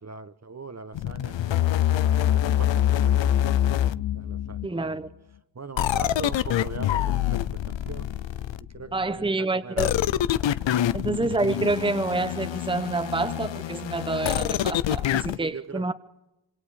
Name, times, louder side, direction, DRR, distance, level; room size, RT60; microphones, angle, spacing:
voice 1, 0.0-1.8 2.2-3.6 4.1-5.1 5.5-8.1 8.6-10.1 10.5-10.9 15.3-15.8, right 4 dB, 35° right, 1.2 m, -41 dB
sound 1, 0.9-4.7 5.8-8.8 9.8-15.4, left 11 dB, 80° left, 0.7 m, -25 dB
voice 2, 4.6-5.1 8.9-9.9 10.9-15.9, right 3 dB, 10° right, 1.1 m, -27 dB
26.5 x 25.5 x 5.1 m
cardioid pair, 65°, 45 cm